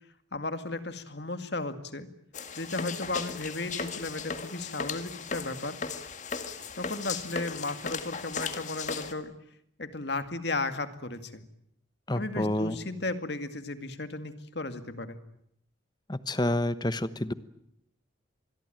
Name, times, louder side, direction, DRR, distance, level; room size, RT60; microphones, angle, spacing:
voice 1, 0.3-2.1 2.5-5.8 6.8-9.3 9.8-11.4 12.1-15.2, left 2 dB, 55° left, 10 dB, 2.2 m, -35 dB
sound 1, 2.3-9.1, left 5 dB, 40° left, 2.0 m, -37 dB
voice 2, 12.1-12.8 16.1-17.3, left 1 dB, 20° left, 14 dB, 1.1 m, -28 dB
26.0 x 21.5 x 9.0 m, 0.74 s
head